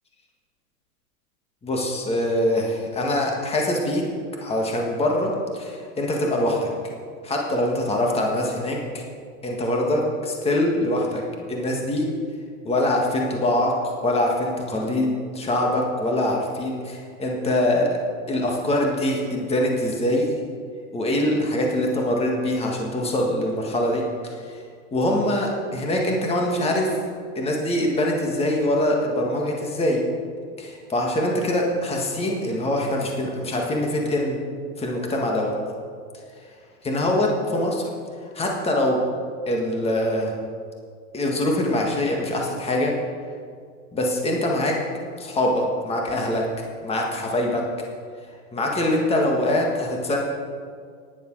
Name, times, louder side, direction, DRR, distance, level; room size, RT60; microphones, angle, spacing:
voice 1, 1.6-4.0 4.4-6.7 7.2-9.0 9.4-11.2 11.5-12.1 12.6-18.0 18.3-20.3 20.9-24.0 24.9-26.9 27.4-30.1 30.6-34.4 34.8-35.5 36.8-37.8 38.3-39.0 39.5-40.3 41.1-42.9 43.9-44.8 45.2-46.5 46.8-47.6 48.5-50.2, left 1 dB, 15° left, 0 dB, 1.8 m, -23 dB
10.5 x 9.2 x 6.2 m, 2.1 s
hypercardioid pair, 130°, 45 cm